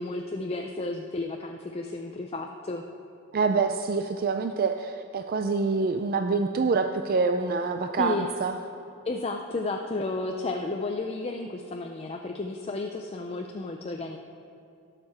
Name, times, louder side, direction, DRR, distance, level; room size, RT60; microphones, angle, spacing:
voice 1, 0.0-2.8 8.0-8.3 9.1-14.2, left 3 dB, 30° left, 3 dB, 0.5 m, -32 dB
voice 2, 3.3-8.6, right 4 dB, 45° right, 6 dB, 0.4 m, -26 dB
17.5 x 6.7 x 4.3 m, 2.6 s
head